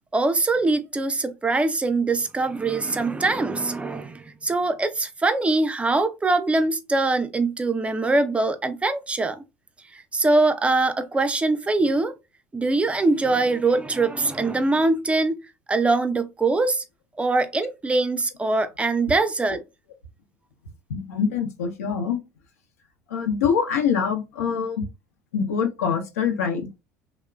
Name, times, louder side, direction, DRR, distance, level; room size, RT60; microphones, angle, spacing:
voice 1, 0.1-9.4 9.9-12.1 12.5-15.4 15.7-16.8 17.2-19.6, right 3 dB, 15° right, 0.4 m, -23 dB
voice 2, 20.9-22.2 23.1-24.9 25.3-26.7, left 6 dB, 80° left, 0.6 m, -24 dB
2.9 x 2.0 x 2.2 m
hypercardioid pair, 70°, 8 cm